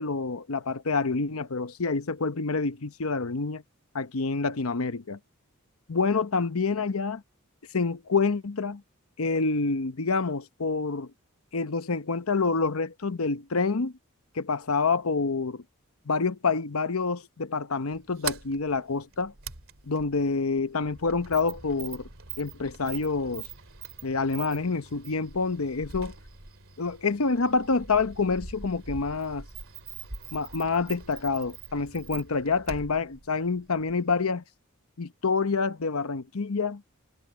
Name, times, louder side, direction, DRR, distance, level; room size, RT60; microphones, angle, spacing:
voice 1, 0.0-3.6 3.9-5.2 5.9-7.2 7.7-8.8 9.2-11.1 11.5-13.9 14.3-15.6 16.1-19.3 19.9-22.1 22.4-23.5 24.0-26.1 26.8-29.4 30.3-34.4 35.0-36.8, left 4 dB, 80° left, 0.9 m, -27 dB
Sliding door, 17.9-34.3, right 6 dB, 65° right, 3.0 m, -43 dB
head